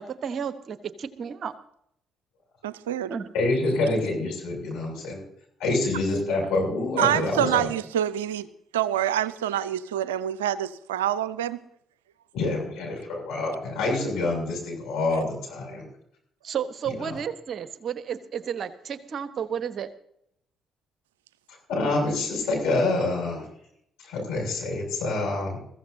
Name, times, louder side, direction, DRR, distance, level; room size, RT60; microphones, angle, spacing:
voice 1, 0.0-1.5 3.1-3.3 16.4-19.9, right 7 dB, 50° right, 13 dB, 1.1 m, -32 dB
voice 2, 2.6-3.1 7.0-8.5 8.7-11.6, right 11 dB, 80° right, 17 dB, 0.5 m, -26 dB
voice 3, 3.3-5.2 5.6-7.7 12.3-15.9 16.9-17.2 21.5-23.5 24.0-25.6, left 2 dB, 70° left, -1 dB, 6.8 m, -27 dB
22.5 x 14.5 x 2.7 m, 0.71 s
figure-of-eight pair, 45°, 0 cm